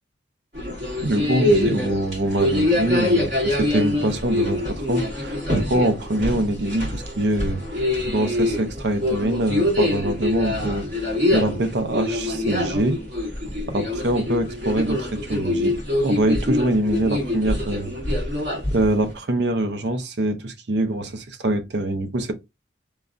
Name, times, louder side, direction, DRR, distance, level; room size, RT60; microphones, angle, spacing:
sound 1, 0.5-19.1, left 1 dB, 40° right, 1.8 m, -24 dB
voice 1, 1.0-13.0 13.7-15.8 16.0-18.3 18.7-22.3, right 1 dB, 65° right, 0.5 m, -24 dB
3.2 x 2.3 x 2.4 m
head